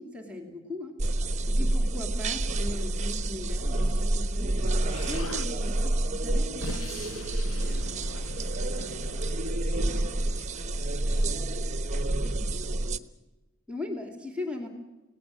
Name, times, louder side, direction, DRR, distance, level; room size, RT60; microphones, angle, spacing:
voice 1, 0.0-7.1 13.7-14.7, left 2 dB, 5° right, 4 dB, 2.7 m, -39 dB
sound 1, 1.0-13.0, right 1 dB, 35° right, 1.1 m, -28 dB
Explosion, 4.9-5.5 6.3-10.1, left 2 dB, 80° left, 1.0 m, -41 dB
voice 2, 7.4-12.9, equal, 55° left, 3 dB, 6.5 m, -53 dB
28.0 x 18.0 x 7.6 m, 1.1 s
head